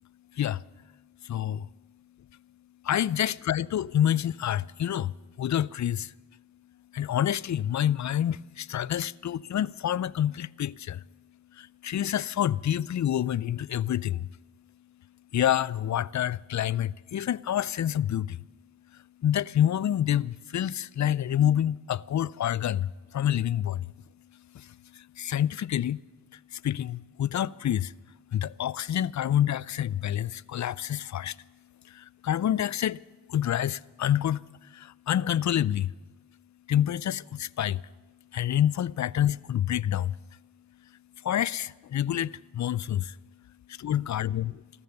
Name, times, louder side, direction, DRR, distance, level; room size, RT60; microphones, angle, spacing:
voice 1, 1.2-1.7 2.8-6.1 6.9-11.0 11.6-14.3 15.3-18.4 19.2-23.9 24.5-26.0 26.5-27.9 28.3-31.4 31.9-33.0 33.3-35.9 36.7-37.8 38.3-40.2 41.2-43.2 43.7-44.6, left 11 dB, 50° left, 0.4 m, -28 dB
15.5 x 13.5 x 6.6 m
cardioid pair, 40°, 38 cm